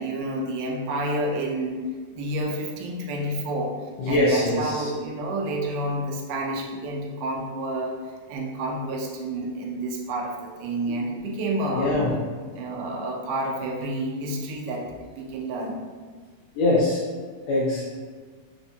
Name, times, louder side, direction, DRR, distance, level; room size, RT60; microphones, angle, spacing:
voice 1, 0.0-1.8 2.1-3.8 4.1-7.9 8.3-11.9 12.6-14.9 15.1-15.8, right 1 dB, 90° right, 0 dB, 2.2 m, -29 dB
voice 2, 4.0-4.9 11.7-12.1 16.5-17.0 17.5-17.8, left 2 dB, 80° left, -7 dB, 1.5 m, -22 dB
5.1 x 2.1 x 2.6 m, 1.5 s
omnidirectional pair, 3.7 m